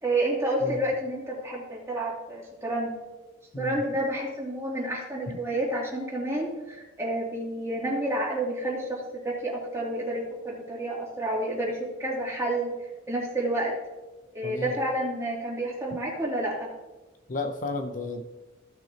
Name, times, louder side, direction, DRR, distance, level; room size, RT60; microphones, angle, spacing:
voice 1, 0.0-2.9 3.6-12.7 13.1-13.7 14.3-16.7, right 1 dB, 15° right, -4 dB, 2.7 m, -29 dB
voice 2, 14.4-14.7 17.3-18.2, left 3 dB, 40° left, 5 dB, 0.6 m, -32 dB
16.0 x 6.1 x 2.9 m, 1.1 s
head